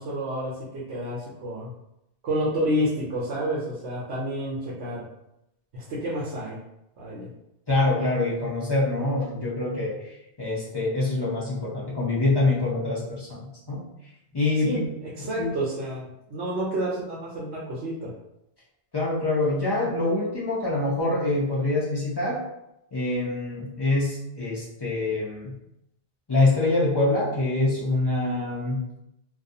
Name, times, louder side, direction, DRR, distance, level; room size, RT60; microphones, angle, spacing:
voice 1, 0.0-1.7 2.2-5.1 5.7-6.6 7.0-7.3 14.5-18.1, equal, 75° right, -6 dB, 0.9 m, -29 dB
voice 2, 7.7-10.0 10.4-13.8 14.3-14.8 15.4-15.5 18.9-22.4 22.9-25.5 26.3-28.8, left 2 dB, 30° left, -7 dB, 0.4 m, -25 dB
2.3 x 2.3 x 2.6 m, 0.85 s
omnidirectional pair, 1.2 m